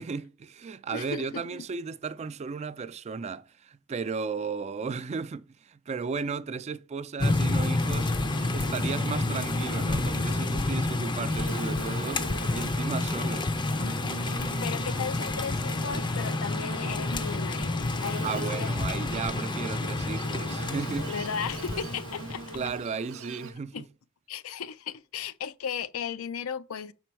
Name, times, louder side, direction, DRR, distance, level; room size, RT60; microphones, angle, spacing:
voice 1, 0.0-8.1 8.5-12.3 12.5-13.5 18.2-21.1 22.5-23.9, right 5 dB, 30° right, 0.3 m, -35 dB
voice 2, 0.9-1.4 14.2-18.7 19.4-19.5 21.1-22.4 23.7-23.9 24.3-26.9, left 7 dB, 75° left, 0.5 m, -36 dB
sound 1, 7.2-22.7, left 2 dB, 20° left, 0.5 m, -29 dB
Buzz, 7.8-23.5, right 3 dB, 70° right, 0.6 m, -42 dB
6.0 x 4.4 x 4.6 m
head